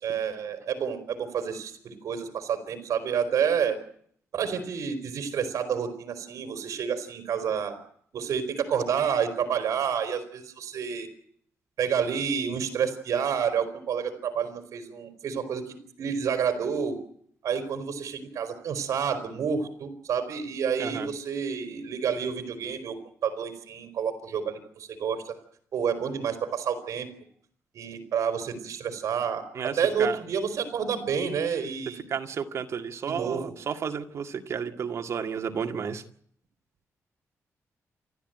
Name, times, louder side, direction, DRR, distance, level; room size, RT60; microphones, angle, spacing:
voice 1, 0.0-3.8 4.3-7.8 8.1-11.1 11.8-17.0 17.4-23.0 23.2-25.4 25.7-27.1 27.7-32.0 33.0-33.6, right 7 dB, 75° right, 7 dB, 4.0 m, -29 dB
voice 2, 29.6-30.2 32.1-36.0, right 7 dB, 55° right, 5 dB, 2.0 m, -32 dB
28.5 x 12.5 x 9.1 m, 0.64 s
wide cardioid pair, 145°, 6 cm